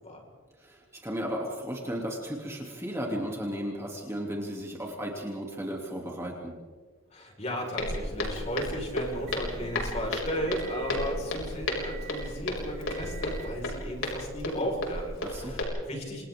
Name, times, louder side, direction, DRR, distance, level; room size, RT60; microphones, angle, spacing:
voice 1, 0.6-6.5 15.2-15.6, equal, 15° right, -1 dB, 3.0 m, -35 dB
voice 2, 7.1-16.2, equal, 30° left, 0 dB, 5.2 m, -35 dB
Motor vehicle (road) / Engine, 7.6-13.7, right 5 dB, 55° right, 4.6 m, -48 dB
Walk footsteps, 7.8-15.6, left 1 dB, 70° left, 6.3 m, -33 dB
29.0 x 27.5 x 3.8 m, 1.5 s
head